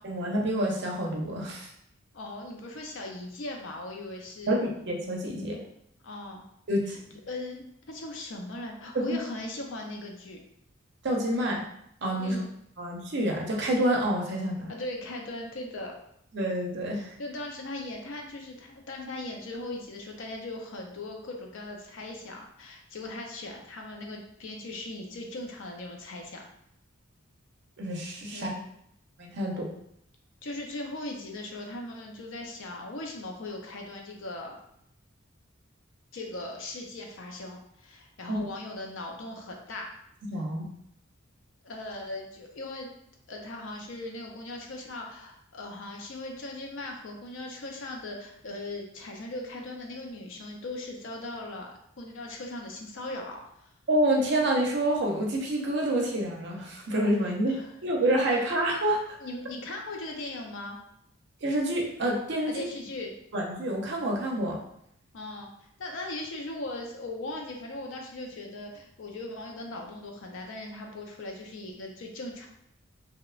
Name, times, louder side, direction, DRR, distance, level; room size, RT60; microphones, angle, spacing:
voice 1, 0.0-1.7 4.5-5.6 6.7-7.0 8.9-9.2 11.0-11.7 12.0-12.4 12.8-14.7 16.3-17.1 27.8-28.5 29.2-29.7 38.3-38.5 40.3-40.6 53.9-59.2 61.4-62.6 63.3-64.6, right 1 dB, 55° right, -1 dB, 0.5 m, -28 dB
voice 2, 2.1-4.6 6.0-6.4 6.9-7.0 7.3-10.4 12.2-12.4 14.7-15.9 17.2-26.4 28.3-28.6 30.4-34.6 36.1-39.9 41.6-42.9 43.3-53.7 57.5-57.7 58.4-58.5 59.2-60.8 62.5-63.1 65.1-65.5 65.8-72.5, left 2 dB, 65° left, 1 dB, 0.5 m, -39 dB
2.9 x 2.1 x 2.3 m, 0.73 s
head